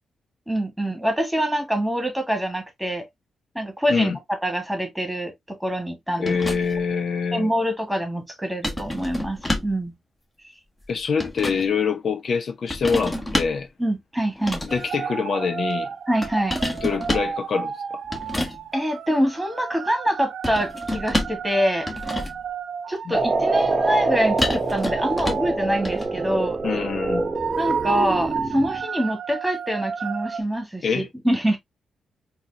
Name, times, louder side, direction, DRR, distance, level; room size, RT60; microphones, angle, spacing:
voice 1, 0.5-3.1 3.6-6.3 7.3-9.9 13.8-14.6 16.1-16.6 18.7-21.9 22.9-26.6 27.6-31.6, equal, 5° right, 1.7 m, -25 dB
voice 2, 6.2-7.5 10.9-13.7 14.6-15.9 16.8-17.7 26.6-27.3 30.8-31.1, left 5 dB, 60° left, 0.5 m, -25 dB
sound 1, 6.3-6.9 8.6-9.8 10.8-11.7 12.7-13.7 14.4-14.9 16.2-17.4 18.1-18.6 20.4-21.5 21.8-22.5 24.4-25.5 25.8-26.1, left 1 dB, 20° left, 1.4 m, -28 dB
sound 2, 14.7-30.4, right 7 dB, 70° right, 0.5 m, -33 dB
sound 3, 23.1-28.8, right 3 dB, 35° right, 0.8 m, -25 dB
4.0 x 2.7 x 2.7 m
hypercardioid pair, 45°, 0 cm